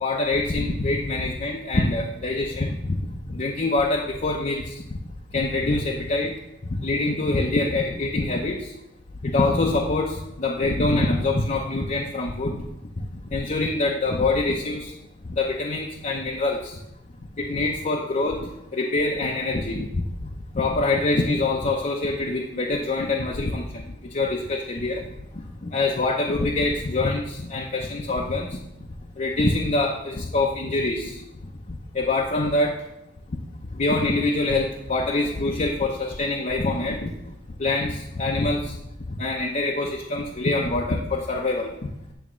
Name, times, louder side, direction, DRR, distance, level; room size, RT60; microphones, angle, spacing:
voice 1, 0.0-3.0 3.3-4.6 5.3-6.3 6.7-8.6 9.2-12.6 13.3-14.9 15.4-16.8 17.4-18.4 18.7-19.9 20.5-23.8 24.1-25.0 25.6-28.6 29.2-31.1 31.7-32.8 33.8-37.1 37.6-38.8 39.2-41.7, left 2 dB, 40° left, 0 dB, 0.7 m, -24 dB
9.1 x 3.5 x 6.2 m, 0.85 s
head